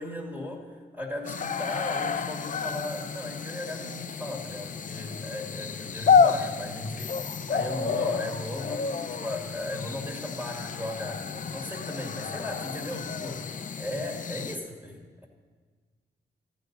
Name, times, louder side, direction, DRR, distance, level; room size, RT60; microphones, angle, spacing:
voice 1, 0.0-15.3, left 1 dB, 10° right, 0 dB, 2.0 m, -37 dB
sound 1, 1.2-14.6, left 6 dB, 45° left, 0.5 m, -29 dB
13.0 x 5.3 x 8.0 m, 1.5 s
cardioid pair, 70°, 18 cm